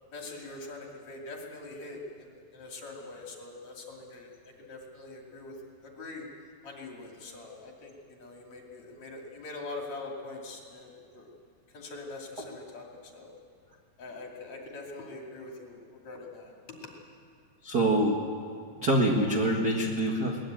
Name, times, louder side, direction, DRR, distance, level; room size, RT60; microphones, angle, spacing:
voice 1, 0.1-4.3 4.6-5.5 5.8-6.3 6.6-11.3 11.7-13.3 14.0-16.9, left 2 dB, 45° left, -1 dB, 3.6 m, -43 dB
voice 2, 17.6-18.2 18.8-20.4, right 1 dB, 55° right, 0 dB, 1.0 m, -25 dB
22.0 x 19.5 x 9.0 m, 2.3 s
omnidirectional pair, 4.6 m